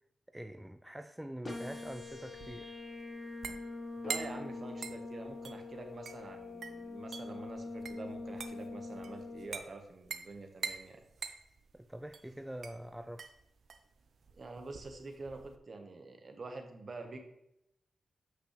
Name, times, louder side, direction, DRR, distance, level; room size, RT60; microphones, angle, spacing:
voice 1, 0.3-2.8 11.7-13.3, right 1 dB, 10° right, 0.4 m, -45 dB
sound 1, 1.4-9.5, left 3 dB, 30° left, 1.6 m, -44 dB
sound 2, 1.6-15.6, right 6 dB, 75° right, 0.6 m, -46 dB
sound 3, 4.0-7.7, left 3 dB, 65° left, 1.4 m, -54 dB
voice 2, 4.0-11.0 14.3-17.2, right 3 dB, 50° right, 1.3 m, -47 dB
8.1 x 5.9 x 3.3 m
cardioid pair, 70°, 0 cm